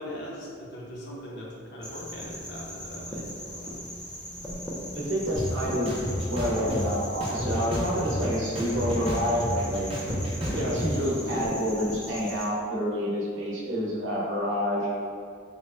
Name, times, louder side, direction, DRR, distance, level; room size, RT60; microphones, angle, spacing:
voice 1, 0.0-3.7, equal, 55° left, -4 dB, 0.6 m, -40 dB
sound 1, 1.8-12.5, equal, 5° left, 0.3 m, -37 dB
voice 2, 4.9-5.9 6.3-9.9 10.5-14.9, equal, 60° right, -5 dB, 0.8 m, -28 dB
sound 2, 5.4-5.5 5.9-6.8 7.2-8.3 8.6-10.8, equal, 30° right, 0.6 m, -31 dB
3.8 x 2.1 x 3.2 m, 2.2 s
head